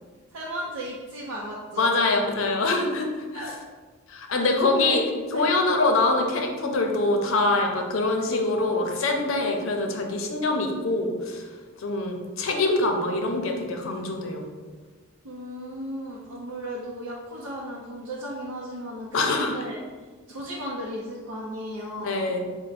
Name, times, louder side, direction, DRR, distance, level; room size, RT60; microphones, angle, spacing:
voice 1, 0.3-2.0 3.3-3.5 4.3-5.0 5.3-5.5 15.2-19.8 20.3-22.3, equal, 85° right, -5 dB, 0.6 m, -35 dB
voice 2, 1.8-3.5 4.1-5.0 5.3-11.4 11.8-14.5 19.1-19.5 22.0-22.5, left 2 dB, 65° left, 3 dB, 0.6 m, -24 dB
4.3 x 2.1 x 4.0 m, 1.4 s
head